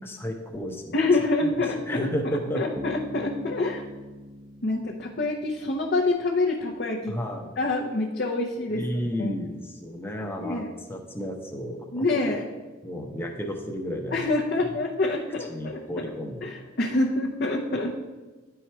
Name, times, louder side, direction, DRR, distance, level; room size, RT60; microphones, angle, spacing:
voice 1, 0.0-0.9 1.4-1.5 1.9-2.6 7.1-7.5 8.7-12.1 12.8-14.2 14.6-14.7 15.5-16.5, equal, 10° left, 2 dB, 0.8 m, -32 dB
voice 2, 0.9-2.1 2.5-3.8 4.6-7.2 7.6-8.8 9.2-9.3 10.4-10.7 11.9-12.5 14.1-16.1 16.4-18.0, left 2 dB, 50° left, -1 dB, 0.7 m, -26 dB
Bass guitar, 2.8-6.4, equal, 20° right, 0.4 m, -43 dB
10.5 x 4.7 x 4.4 m, 1.3 s
head